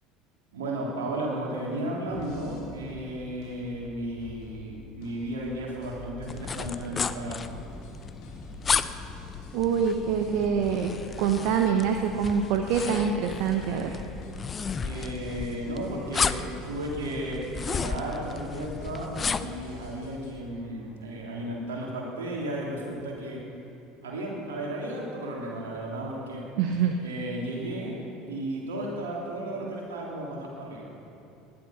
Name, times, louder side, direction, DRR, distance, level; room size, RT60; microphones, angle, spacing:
voice 1, 0.5-7.6 14.8-16.4 16.7-23.4 24.0-26.5 27.0-28.0 28.3-31.0, right 1 dB, 75° right, -3 dB, 3.5 m, -34 dB
sound 1, 2.1-20.3, left 2 dB, 60° left, 3.6 m, -46 dB
sound 2, 6.3-19.6, left 5 dB, 30° left, 0.6 m, -34 dB
voice 2, 9.5-14.0 26.6-27.0, right 7 dB, 60° right, 5 dB, 1.0 m, -25 dB
19.5 x 12.0 x 5.9 m, 2.7 s
hypercardioid pair, 70°, 0 cm